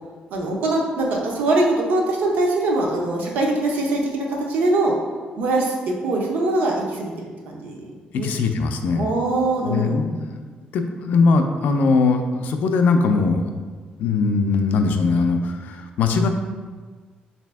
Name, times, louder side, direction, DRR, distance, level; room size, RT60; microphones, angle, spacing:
voice 1, 0.3-4.9 5.4-8.3 9.0-9.9, right 2 dB, 85° right, -1 dB, 0.7 m, -22 dB
voice 2, 8.2-9.1 9.6-10.4 10.7-13.4 14.0-16.3, left 4 dB, 70° left, 6 dB, 0.4 m, -20 dB
4.1 x 2.7 x 3.4 m, 1.5 s
cardioid pair, 165°, 3 cm